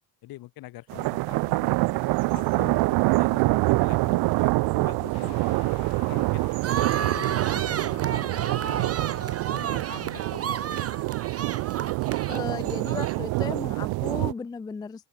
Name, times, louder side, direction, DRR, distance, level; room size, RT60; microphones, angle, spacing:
voice 1, 0.2-1.9 2.3-6.5 6.8-10.8, left 16 dB, 65° left, 2.0 m, -45 dB
sound 1, 0.9-14.3, right 23 dB, 75° right, 0.9 m, -26 dB
sound 2, 5.1-14.5, left 26 dB, 80° left, 3.3 m, -53 dB
sound 3, 6.6-13.5, right 8 dB, 40° right, 2.4 m, -33 dB
voice 2, 12.3-15.1, left 5 dB, 10° left, 0.3 m, -35 dB
open air
supercardioid pair, 95°, 38 cm